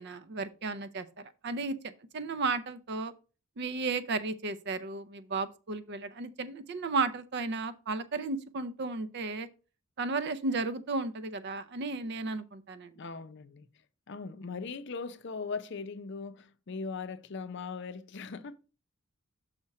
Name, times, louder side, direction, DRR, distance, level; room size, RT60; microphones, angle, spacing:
voice 1, 0.0-3.1 3.6-9.5 10.0-13.0, right 3 dB, 50° right, 0.5 m, -34 dB
voice 2, 12.9-13.7 14.1-18.5, left 4 dB, 55° left, 0.5 m, -39 dB
6.5 x 4.3 x 4.7 m
head